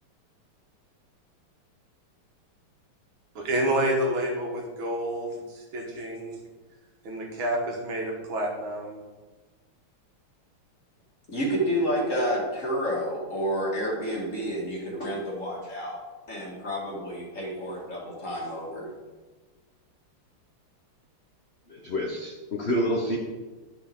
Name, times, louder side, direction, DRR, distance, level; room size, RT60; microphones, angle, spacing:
voice 1, 3.4-6.4 7.0-9.0, right 1 dB, 65° right, 0 dB, 2.0 m, -29 dB
voice 2, 11.3-15.9 16.3-18.9, equal, 35° left, -4 dB, 2.1 m, -29 dB
voice 3, 21.7-23.2, equal, 60° left, -1 dB, 0.7 m, -28 dB
9.9 x 6.0 x 3.7 m, 1.3 s
omnidirectional pair, 2.4 m